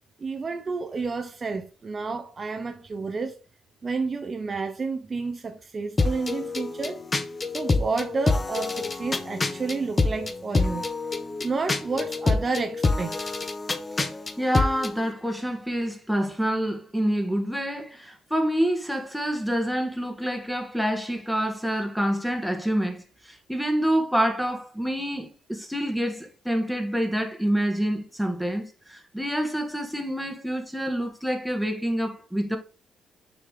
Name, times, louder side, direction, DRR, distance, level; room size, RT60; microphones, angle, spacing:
voice 1, 0.2-3.4 3.8-7.0 7.5-10.9 11.4-13.2, right 4 dB, 35° right, 0.8 m, -30 dB
sound 1, 6.0-14.9, left 3 dB, 25° left, 0.8 m, -27 dB
voice 2, 14.4-32.6, equal, ahead, 1.7 m, -27 dB
6.6 x 5.0 x 3.7 m
cardioid pair, 90°, 0 cm